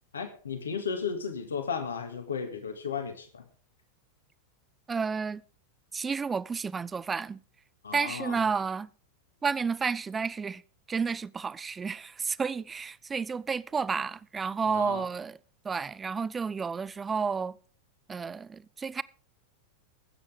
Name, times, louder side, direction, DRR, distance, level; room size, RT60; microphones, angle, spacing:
voice 1, 0.1-3.5 7.8-8.4 14.7-15.1, left 6 dB, 70° left, 2.0 m, -34 dB
voice 2, 4.9-5.4 5.9-7.4 7.9-8.9 9.4-10.6 10.9-15.4 15.6-17.5 18.1-19.0, right 5 dB, 15° right, 0.5 m, -31 dB
19.0 x 8.9 x 3.7 m
figure-of-eight pair, 90°, 0 cm